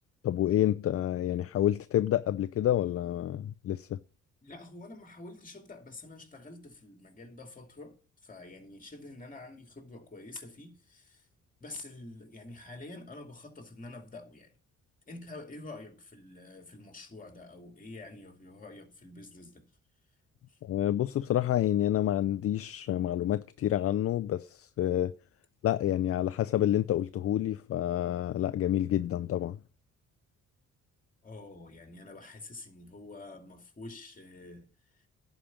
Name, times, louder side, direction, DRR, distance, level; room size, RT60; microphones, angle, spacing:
voice 1, 0.2-4.0 20.6-25.1 25.6-29.6, left 12 dB, 50° left, 0.5 m, -28 dB
voice 2, 4.4-8.0 8.2-11.3 11.6-14.6 15.1-19.7 20.5-20.6 31.2-35.0, left 2 dB, 25° left, 2.5 m, -47 dB
11.0 x 5.1 x 7.2 m
cardioid pair, 90°, 30 cm